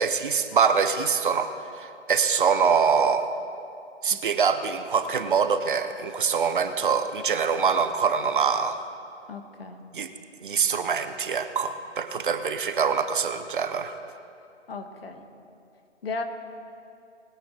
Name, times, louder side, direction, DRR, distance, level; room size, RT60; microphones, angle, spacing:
voice 1, 0.0-3.3 4.0-8.8 9.9-10.1 10.4-14.0, right 6 dB, 45° right, 10 dB, 0.8 m, -24 dB
voice 2, 9.3-9.8 14.7-15.2 16.0-16.2, left 4 dB, 55° left, 6 dB, 1.5 m, -35 dB
21.0 x 9.1 x 4.4 m, 2.6 s
figure-of-eight pair, 145°, 36 cm